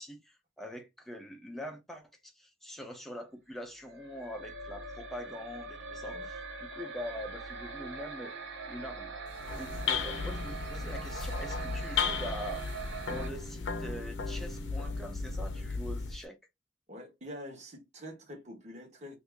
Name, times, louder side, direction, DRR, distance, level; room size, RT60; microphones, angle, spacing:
voice 1, 0.0-8.3 8.6-9.1 9.6-12.6 13.1-16.4, equal, ahead, 0.8 m, -43 dB
sound 1, 3.8-13.3, right 4 dB, 65° right, 0.8 m, -42 dB
sound 2, 9.3-16.3, left 4 dB, 70° left, 0.7 m, -35 dB
voice 2, 16.9-19.2, equal, 35° right, 1.4 m, -45 dB
2.8 x 2.7 x 3.5 m
head